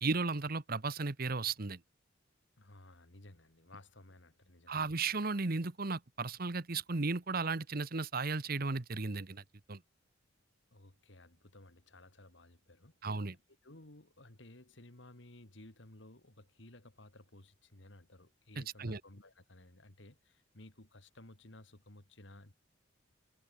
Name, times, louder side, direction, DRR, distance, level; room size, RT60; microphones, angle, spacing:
voice 1, 0.0-1.8 4.7-9.4 9.7-9.8 13.0-13.4 18.6-19.0, right 3 dB, 50° right, 1.1 m, -35 dB
voice 2, 2.6-4.8 10.7-13.2 13.6-22.5, left 1 dB, 65° left, 2.7 m, -56 dB
head